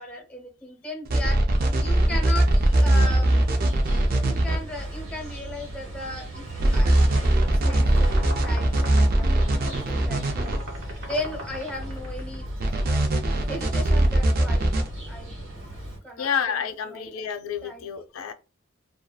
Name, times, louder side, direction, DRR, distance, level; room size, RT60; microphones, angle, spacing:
voice 1, 0.0-1.4 1.8-3.3 4.2-6.4 6.7-10.6 11.0-12.4 13.5-14.8 15.0-15.3 16.0-16.6 16.9-17.1 17.6-17.9, left 1 dB, 5° left, 0.7 m, -36 dB
sound 1, 1.1-4.6 6.6-10.6 12.6-14.9, right 1 dB, 45° right, 0.4 m, -21 dB
sound 2, 1.5-16.0, right 1 dB, 90° right, 1.3 m, -36 dB
sound 3, 6.7-12.4, right 1 dB, 70° right, 0.9 m, -40 dB
voice 2, 16.2-18.3, left 7 dB, 90° left, 0.4 m, -29 dB
2.6 x 2.3 x 2.2 m
head